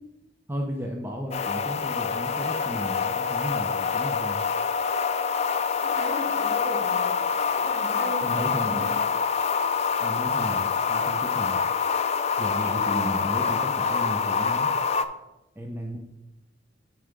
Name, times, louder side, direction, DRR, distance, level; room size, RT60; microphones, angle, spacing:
voice 1, 0.5-4.4 8.2-8.9 10.0-11.6 12.4-14.7 15.6-16.0, equal, 10° right, 0 dB, 0.6 m, -34 dB
sound 1, 1.3-15.1, left 6 dB, 35° left, 0.4 m, -26 dB
voice 2, 5.8-7.2 7.5-9.0 12.6-13.1, right 1 dB, 45° right, -4 dB, 2.8 m, -37 dB
6.9 x 4.6 x 5.2 m, 0.93 s
head